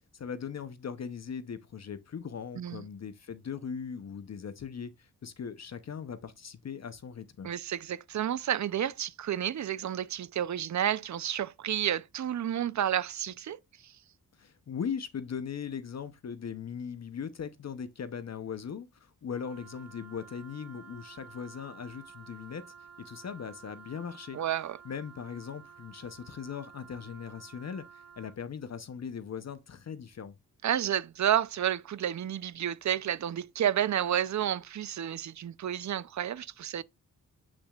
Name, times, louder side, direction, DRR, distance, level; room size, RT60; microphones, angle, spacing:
voice 1, 0.1-7.5 14.4-22.6 23.0-24.4 24.8-30.3, left 7 dB, 50° left, 0.7 m, -39 dB
voice 2, 7.4-13.9 24.3-24.8 30.6-36.8, right 10 dB, 55° right, 0.5 m, -31 dB
Wind instrument woodwind instrument, 19.3-28.4, right 6 dB, 80° right, 2.4 m, -52 dB
8.2 x 6.1 x 2.3 m
wide cardioid pair, 120°, 34 cm